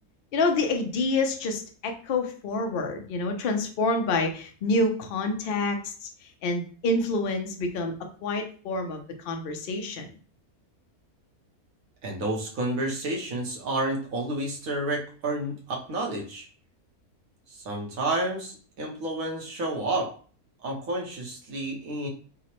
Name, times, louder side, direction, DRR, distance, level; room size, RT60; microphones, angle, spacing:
voice 1, 0.3-6.1 6.4-7.9 8.2-10.1, left 2 dB, 55° left, 4 dB, 0.6 m, -27 dB
voice 2, 12.0-16.5 17.5-20.2 20.6-22.1, right 2 dB, 70° right, 0 dB, 1.3 m, -30 dB
4.8 x 2.1 x 2.9 m, 0.41 s
omnidirectional pair, 1.6 m